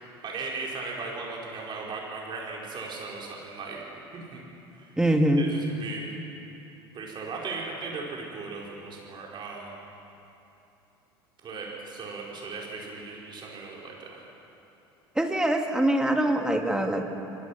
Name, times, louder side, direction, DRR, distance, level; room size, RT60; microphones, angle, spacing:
voice 1, 0.2-3.8 4.1-4.4 4.8-4.9 5.4-6.0 6.9-9.8 11.4-14.2, right 4 dB, 35° right, -2 dB, 5.0 m, -37 dB
voice 2, 5.0-5.5 15.2-17.1, right 1 dB, 5° right, 3 dB, 2.5 m, -23 dB
25.0 x 23.0 x 6.1 m, 3.0 s
figure-of-eight pair, 70°, 13 cm